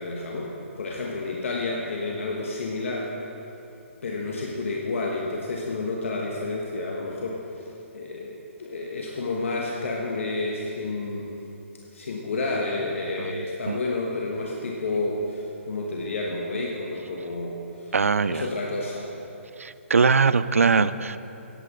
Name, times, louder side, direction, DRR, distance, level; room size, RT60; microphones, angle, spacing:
voice 1, 0.0-3.1 4.0-7.7 7.9-11.4 11.9-19.1, left 2 dB, 65° left, -1 dB, 1.2 m, -30 dB
voice 2, 17.9-18.4 19.6-21.2, right 5 dB, 85° right, 15 dB, 0.4 m, -21 dB
17.0 x 8.2 x 3.7 m, 2.9 s
figure-of-eight pair, 135°, 7 cm